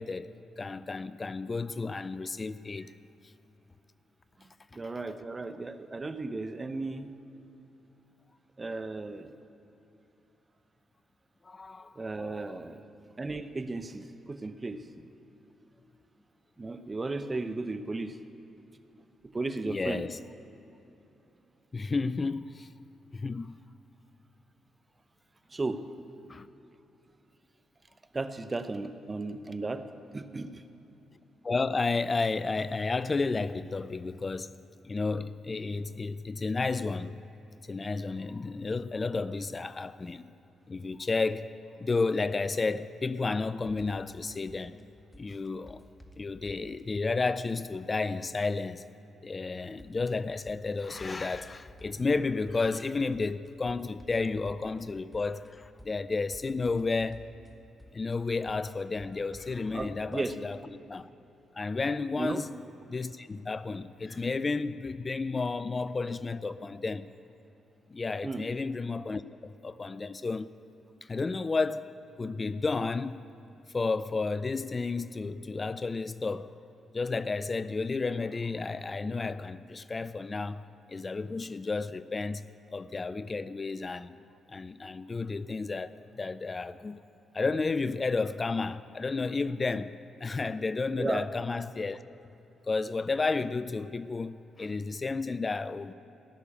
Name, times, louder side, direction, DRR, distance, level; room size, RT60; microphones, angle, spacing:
voice 1, 0.0-2.9 11.5-12.6 19.7-20.2 21.7-22.7 23.1-23.6 26.3-26.5 31.4-34.5 34.8-37.1 37.7-40.3 40.7-41.5 41.8-44.8 45.1-45.8 46.2-48.8 49.2-57.3 57.9-61.1 61.6-62.5 62.9-67.1 67.9-70.5 71.0-71.9 72.2-73.2 73.7-76.5 76.9-84.2 84.5-87.0 87.3-90.0 90.2-92.0 92.7-95.9, left 3 dB, 35° left, 0.4 m, -32 dB
voice 2, 4.4-7.1 8.6-9.3 12.0-12.8 13.2-14.8 16.6-18.2 19.3-20.1 25.5-25.8 28.1-29.8 30.1-30.6 59.7-60.4 62.2-62.4 68.2-68.5 91.0-91.3, right 3 dB, 30° right, 0.8 m, -35 dB
sound 1, 43.7-44.1 44.5-44.8 45.1-46.8 49.8-50.1 50.5-52.2 52.5-52.8 53.1-54.8 55.1-55.5 55.8-57.5 57.8-58.1 58.5-60.2, equal, 10° left, 1.7 m, -52 dB
15.5 x 6.7 x 8.6 m
supercardioid pair, 55°, 0 cm